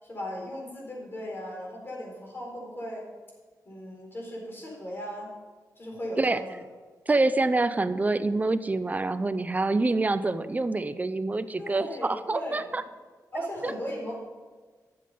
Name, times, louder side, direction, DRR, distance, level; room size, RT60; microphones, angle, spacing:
voice 1, 0.0-3.1 3.6-5.3 5.8-6.6 11.6-12.7 13.3-14.2, equal, 35° left, -2 dB, 4.2 m, -37 dB
voice 2, 7.1-12.8 13.3-13.7, right 2 dB, 25° right, 12 dB, 0.6 m, -26 dB
12.0 x 7.6 x 5.6 m, 1.4 s
wide cardioid pair, 100°, 7 cm